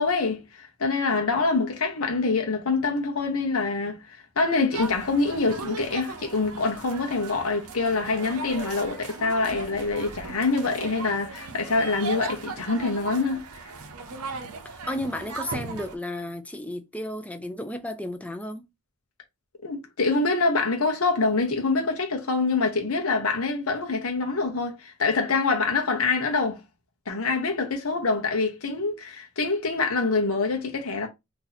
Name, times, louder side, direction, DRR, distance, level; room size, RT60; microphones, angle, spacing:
voice 1, 0.0-13.4 19.6-26.6 27.1-31.1, left 3 dB, 70° left, 0.9 m, -25 dB
sound 1, 4.7-16.0, right 3 dB, 90° right, 0.7 m, -37 dB
voice 2, 14.9-18.6, left 1 dB, 5° left, 0.5 m, -33 dB
2.8 x 2.6 x 4.0 m
head